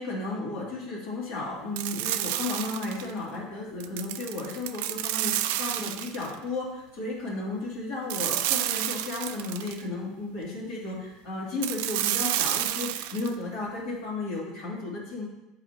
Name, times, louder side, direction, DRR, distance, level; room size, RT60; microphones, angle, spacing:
voice 1, 0.0-15.3, left 2 dB, 65° left, -5 dB, 2.4 m, -34 dB
sound 1, 1.8-3.1 3.8-6.3 8.1-9.8 11.6-13.3, right 13 dB, 85° right, 0.3 m, -30 dB
9.7 x 4.2 x 2.8 m, 0.94 s
cardioid pair, 140°, 0 cm